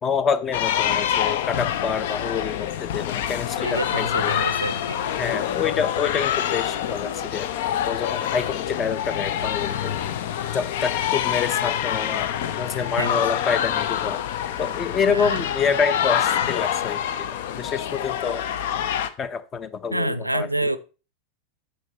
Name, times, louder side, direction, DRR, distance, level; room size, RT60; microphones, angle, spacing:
voice 1, 0.0-4.4 5.2-7.5 7.9-9.9 10.5-12.3 12.6-14.2 14.6-17.3 17.6-18.4 19.2-20.5, left 6 dB, 25° left, 0.9 m, -27 dB
sound 1, 0.5-19.1, left 10 dB, 55° left, 0.7 m, -26 dB
voice 2, 3.6-5.0 12.7-13.3 15.1-15.5 19.9-20.8, right 1 dB, 85° right, 0.5 m, -28 dB
9.3 x 6.9 x 4.0 m
figure-of-eight pair, 90°, 0 cm